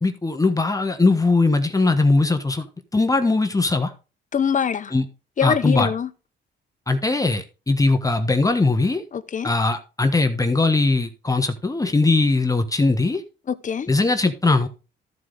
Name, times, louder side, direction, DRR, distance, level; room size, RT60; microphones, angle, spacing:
voice 1, 0.0-2.7 2.9-3.9 4.9-5.0 5.4-5.9 6.9-9.0 9.4-13.2 13.9-14.7, left 3 dB, 15° left, 1.2 m, -20 dB
voice 2, 4.3-4.9 5.4-6.1 9.1-9.5 13.5-13.9, left 7 dB, 40° left, 0.8 m, -23 dB
13.5 x 4.8 x 3.9 m
cardioid pair, 90°, 20 cm